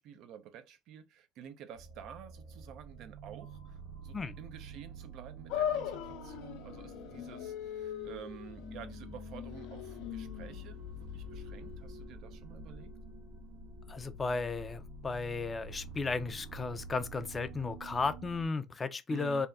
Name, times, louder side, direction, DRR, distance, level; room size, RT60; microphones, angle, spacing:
voice 1, 0.0-12.9 19.1-19.5, right 8 dB, 65° right, 0.5 m, -50 dB
sound 1, 1.7-18.5, right 1 dB, 85° right, 1.1 m, -48 dB
sound 2, 5.5-11.9, left 10 dB, 75° left, 0.5 m, -40 dB
voice 2, 13.9-19.5, left 4 dB, 25° left, 0.4 m, -34 dB
2.8 x 2.2 x 3.6 m
supercardioid pair, 95°, 0 cm